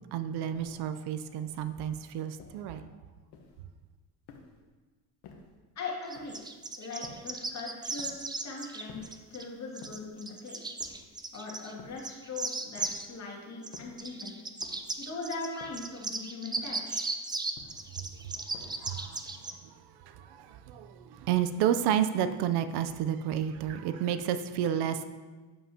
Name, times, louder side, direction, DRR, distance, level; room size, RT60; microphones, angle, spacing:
voice 1, 0.1-2.9 18.0-25.0, right 9 dB, 75° right, 11 dB, 0.6 m, -31 dB
sound 1, 0.5-0.9 1.5-1.8 2.4-2.8 3.3-3.7 4.3-4.7 5.2-5.6 6.1-6.5 7.0-7.4 8.0-8.3 8.9-9.3 9.8-10.2 10.8-11.2 11.8-12.2 12.8-13.2 13.7-14.1 14.6-15.0 15.6-16.0 16.6-17.0 17.5-18.0 18.5-19.0, left 4 dB, 80° left, 1.2 m, -53 dB
voice 2, 5.8-6.4 6.8-10.6 11.3-14.3 15.0-17.1, left 3 dB, 40° left, -3 dB, 2.2 m, -40 dB
sound 2, 6.1-9.4 9.8-11.7 12.0-13.1 13.6-19.5, right 3 dB, 10° right, 0.4 m, -36 dB
8.5 x 7.3 x 2.8 m, 1.4 s
cardioid pair, 110°, 40 cm